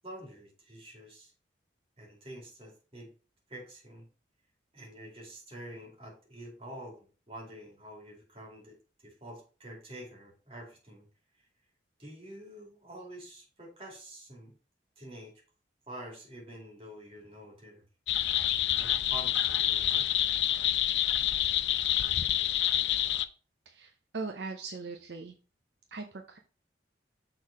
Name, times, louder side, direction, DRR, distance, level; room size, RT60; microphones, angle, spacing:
voice 1, 0.0-1.3 2.0-3.1 3.5-4.1 4.7-8.8 9.0-11.1 12.0-14.5 15.0-15.3 15.9-17.8 18.8-20.1, right 1 dB, 30° right, -1 dB, 2.5 m, -47 dB
sound 1, 18.1-23.3, left 12 dB, 75° left, 0.5 m, -27 dB
voice 2, 23.7-25.3 25.9-26.4, right 3 dB, 65° right, 3 dB, 0.7 m, -40 dB
6.4 x 3.9 x 5.0 m, 0.35 s
head